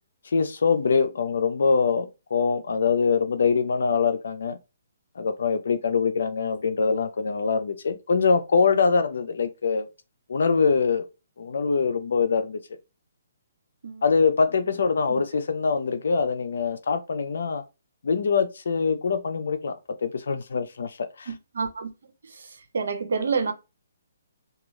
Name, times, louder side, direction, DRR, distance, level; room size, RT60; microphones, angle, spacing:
voice 1, 0.3-4.6 5.2-9.9 10.3-11.1 11.4-12.6 14.0-17.6 18.0-19.7 20.0-21.3, left 5 dB, 70° left, 0.5 m, -23 dB
voice 2, 21.3-21.9 22.3-23.5, right 5 dB, 75° right, 0.7 m, -28 dB
2.4 x 2.3 x 3.1 m
hypercardioid pair, 150°, 0 cm